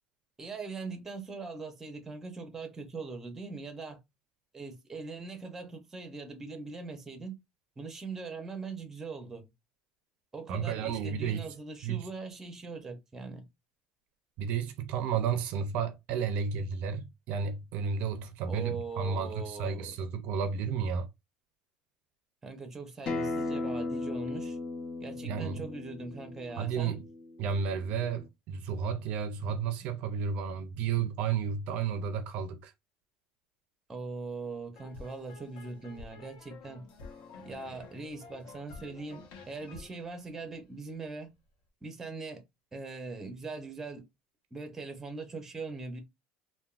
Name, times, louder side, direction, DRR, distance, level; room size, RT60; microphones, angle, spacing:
voice 1, 0.4-4.0 4.5-7.4 7.8-9.5 10.3-13.5 18.5-19.9 22.4-24.6 25.0-27.0 33.9-36.8 37.4-41.3 41.8-42.4 42.7-44.0 44.5-46.0, right 3 dB, 15° right, 0.6 m, -41 dB
voice 2, 10.5-11.5 11.8-12.1 14.4-21.1 25.2-25.6 26.6-27.0 27.4-32.7, right 6 dB, 55° right, 0.4 m, -32 dB
Acoustic guitar, 23.1-28.3, left 3 dB, 35° left, 0.6 m, -37 dB
sound 1, 34.7-41.1, left 3 dB, 65° left, 0.9 m, -50 dB
3.4 x 2.2 x 2.4 m
cardioid pair, 150°, 3 cm